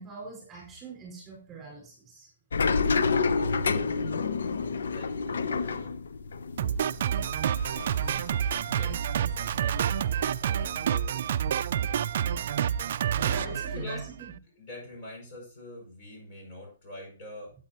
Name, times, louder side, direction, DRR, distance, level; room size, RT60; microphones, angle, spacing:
voice 1, 0.0-2.3 13.2-14.3, right 3 dB, 15° right, -2 dB, 4.8 m, -43 dB
sound 1, 2.5-9.2 9.5-10.9, left 4 dB, 75° left, 0.7 m, -29 dB
voice 2, 3.9-4.3 4.9-6.0 8.7-9.8 10.4-11.2 13.2-14.0 14.5-17.5, left 1 dB, 35° left, -1 dB, 5.7 m, -43 dB
Drum kit, 6.6-14.4, right 9 dB, 50° right, 0.4 m, -28 dB
11.5 x 8.7 x 2.9 m, 0.38 s
hypercardioid pair, 155°, 0 cm